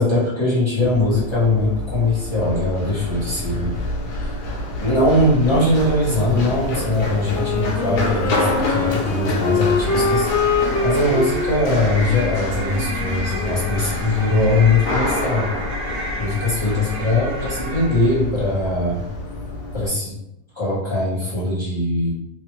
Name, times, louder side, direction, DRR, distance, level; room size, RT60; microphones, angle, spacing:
voice 1, 0.0-3.8 4.1-4.3 4.8-10.3 10.8-15.5 16.2-19.0 19.7-20.2 20.5-22.1, left 2 dB, 20° left, -10 dB, 1.1 m, -21 dB
Run, 0.8-19.9, left 1 dB, 85° left, 1.3 m, -28 dB
Wind instrument woodwind instrument, 7.3-13.9, left 4 dB, 70° left, 0.6 m, -24 dB
sound 1, 9.8-18.3, left 1 dB, 70° right, 1.0 m, -30 dB
3.1 x 2.4 x 3.1 m, 0.87 s
omnidirectional pair, 1.7 m